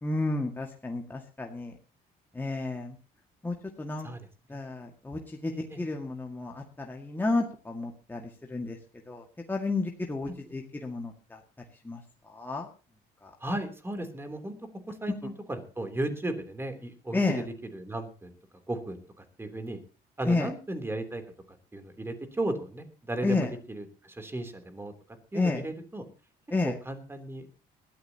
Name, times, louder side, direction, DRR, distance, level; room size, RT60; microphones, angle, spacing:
voice 1, 0.0-1.8 2.3-3.0 3.4-4.1 4.5-8.8 9.1-11.4 11.8-12.7 13.2-13.3 17.1-17.4 20.3-20.5 23.2-23.5 25.3-25.6 26.5-26.7, left 3 dB, 10° left, 1 dB, 1.9 m, -31 dB
voice 2, 13.4-14.5 14.9-17.4 17.7-18.3 18.7-19.8 20.2-21.2 21.7-24.9 25.3-26.0 26.6-27.6, right 1 dB, 15° right, 7 dB, 3.3 m, -35 dB
20.5 x 13.5 x 2.9 m, 0.34 s
cardioid pair, 110°, 17 cm